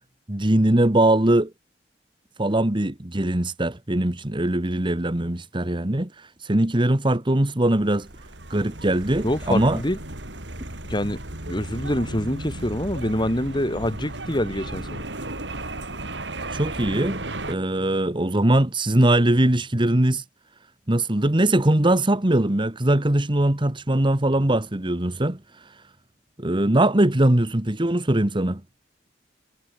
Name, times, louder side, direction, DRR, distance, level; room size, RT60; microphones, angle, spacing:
voice 1, 0.3-1.5 2.4-8.1 8.5-9.8 16.5-17.2 17.5-20.2 20.9-25.7 26.4-28.6, right 1 dB, 25° right, 1.5 m, -21 dB
sound 1, 7.8-17.6, right 2 dB, 75° right, 5.8 m, -35 dB
voice 2, 9.2-10.0 10.9-11.2 11.5-15.0, left 1 dB, 25° left, 7.2 m, -25 dB
head